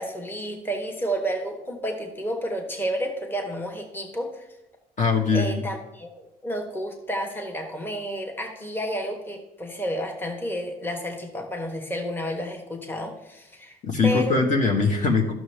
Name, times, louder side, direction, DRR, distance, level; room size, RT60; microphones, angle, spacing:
voice 1, 0.0-4.4 5.3-13.8 14.0-14.4, equal, 10° left, 2 dB, 1.1 m, -31 dB
voice 2, 5.0-5.6 13.8-15.3, left 4 dB, 50° left, 2 dB, 1.3 m, -21 dB
11.5 x 6.2 x 3.3 m, 0.90 s
cardioid pair, 110°, 17 cm